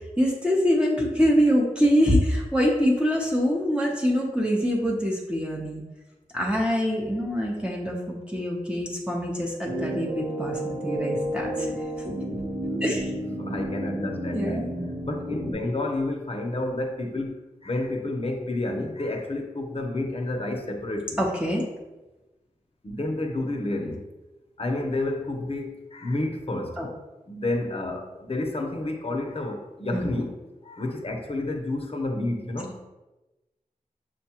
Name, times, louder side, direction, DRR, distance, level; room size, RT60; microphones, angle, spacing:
voice 1, 0.2-5.8 6.3-11.7 12.8-13.1 14.3-14.7 21.2-21.6 26.8-26.9 29.9-30.1, equal, 5° right, -3 dB, 0.8 m, -24 dB
sound 1, 9.6-15.5, right 1 dB, 70° right, 0.9 m, -31 dB
voice 2, 13.4-14.7 15.0-21.2 22.8-24.1 24.6-26.8 27.3-30.3 30.6-32.7, left 2 dB, 45° left, 3 dB, 0.7 m, -30 dB
6.3 x 2.2 x 2.9 m, 1.1 s
cardioid pair, 45°, 14 cm